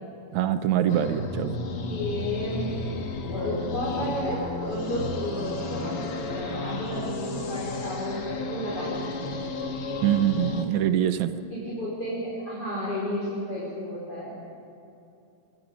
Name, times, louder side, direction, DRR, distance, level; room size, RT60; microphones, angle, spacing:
voice 1, 0.3-1.6 10.0-11.3, right 11 dB, 70° right, 10 dB, 1.9 m, -24 dB
sound 1, 0.9-10.6, left 3 dB, 50° left, 2.1 m, -33 dB
voice 2, 1.8-2.7 3.2-9.5 11.5-14.3, equal, 30° left, -7 dB, 5.2 m, -32 dB
25.5 x 22.5 x 5.2 m, 2.7 s
omnidirectional pair, 3.8 m